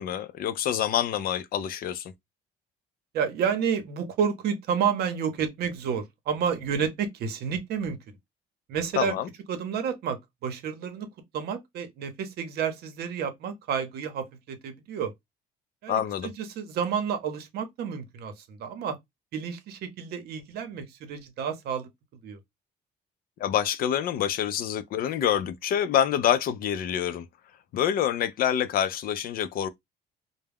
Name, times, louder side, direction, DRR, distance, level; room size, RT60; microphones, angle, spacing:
voice 1, 0.0-2.1 9.0-9.3 15.9-16.3 23.4-27.3 27.7-29.7, left 10 dB, 60° left, 0.4 m, -26 dB
voice 2, 3.1-8.0 8.7-9.1 9.5-11.1 11.3-15.1 15.8-19.0 19.3-21.9 22.2-22.4, right 7 dB, 70° right, 0.7 m, -30 dB
2.3 x 2.0 x 3.3 m
cardioid pair, 110°, 17 cm